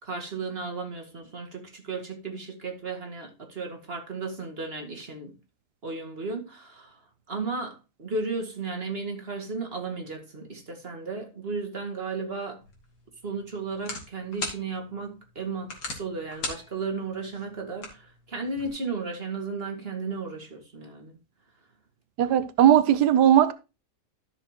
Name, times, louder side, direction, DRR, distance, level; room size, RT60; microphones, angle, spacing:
voice 1, 0.0-5.4 5.8-7.0 7.3-12.6 13.2-21.2, right 4 dB, 35° right, 2.2 m, -34 dB
sound 1, 12.6-18.7, left 3 dB, 90° left, 2.7 m, -41 dB
voice 2, 22.2-23.5, right 10 dB, 90° right, 1.4 m, -18 dB
13.0 x 6.5 x 3.0 m
omnidirectional pair, 1.7 m